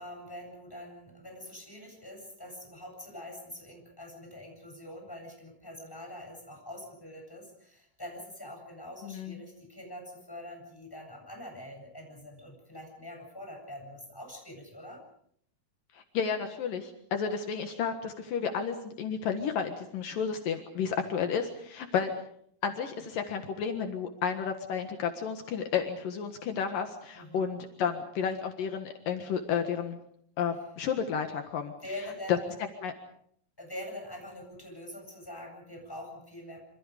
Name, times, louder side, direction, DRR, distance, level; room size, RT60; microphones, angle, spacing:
voice 1, 0.0-15.0 27.1-27.5 31.8-32.5 33.6-36.6, left 1 dB, 5° left, 2 dB, 7.8 m, -44 dB
voice 2, 9.0-9.4 15.9-22.1 22.6-30.0 30.4-31.7 32.3-32.4 32.8-32.9, left 7 dB, 70° left, 5 dB, 3.2 m, -32 dB
27.5 x 26.5 x 5.1 m, 0.65 s
omnidirectional pair, 4.1 m